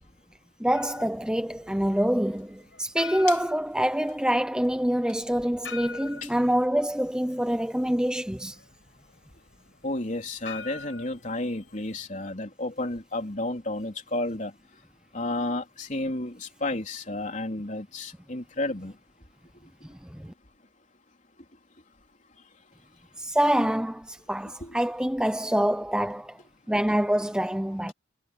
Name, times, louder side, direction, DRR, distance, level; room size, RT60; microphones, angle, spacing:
voice 1, 0.6-8.6 19.8-20.3 23.2-26.4 26.7-27.9, equal, 5° right, 0.8 m, -26 dB
sound 1, 0.7-12.1, left 5 dB, 80° left, 7.9 m, -44 dB
voice 2, 9.8-14.5 15.1-18.9 24.6-24.8, left 2 dB, 40° left, 3.7 m, -32 dB
head